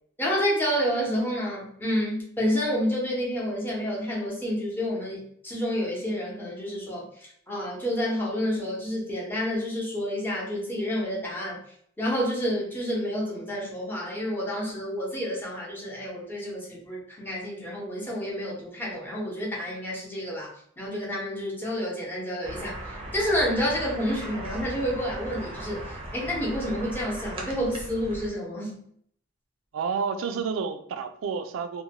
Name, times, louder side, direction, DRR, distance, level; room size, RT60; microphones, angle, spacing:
voice 1, 0.2-11.6 12.0-20.5 20.8-28.8, equal, 10° left, 0.8 m, -29 dB
sound 1, 22.4-28.3, right 1 dB, 30° right, 0.6 m, -38 dB
voice 2, 29.7-31.8, right 6 dB, 80° right, 0.3 m, -30 dB
2.7 x 2.1 x 2.8 m
head